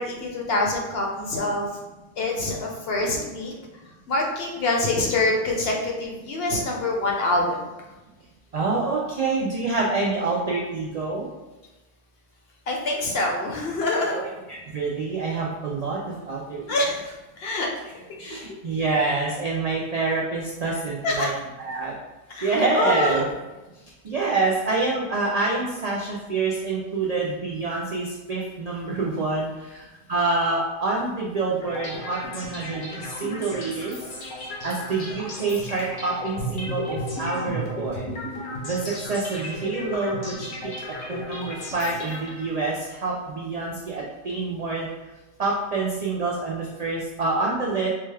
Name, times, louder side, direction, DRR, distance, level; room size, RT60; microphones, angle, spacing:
voice 1, 0.0-1.7 2.2-3.5 4.1-7.6 12.7-14.3 16.7-17.0 17.4-17.7 21.0-21.3 22.3-23.2, left 2 dB, 60° left, -1 dB, 0.8 m, -25 dB
voice 2, 8.5-11.3 14.1-16.8 18.2-21.3 21.6-21.9 22.4-23.2 24.0-34.0 34.6-38.1 38.6-40.5 41.1-44.9 45.4-47.9, right 3 dB, 75° right, -3 dB, 0.3 m, -27 dB
sound 1, 31.6-42.7, left 1 dB, 85° left, 1.2 m, -34 dB
3.9 x 2.2 x 3.2 m, 1.1 s
omnidirectional pair, 1.2 m